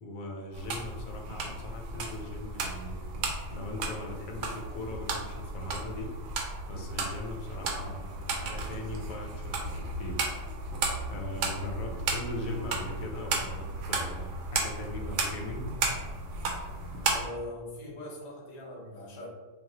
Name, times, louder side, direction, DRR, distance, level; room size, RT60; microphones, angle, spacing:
voice 1, 0.0-3.0 3.5-6.2 6.7-10.3 11.1-15.8, left 1 dB, 90° left, 1 dB, 1.0 m, -40 dB
sound 1, 0.5-17.3, right 3 dB, 85° right, 1.0 m, -34 dB
voice 2, 17.1-19.3, left 1 dB, 40° left, -3 dB, 0.5 m, -41 dB
2.4 x 2.1 x 3.7 m, 1.2 s
omnidirectional pair, 1.4 m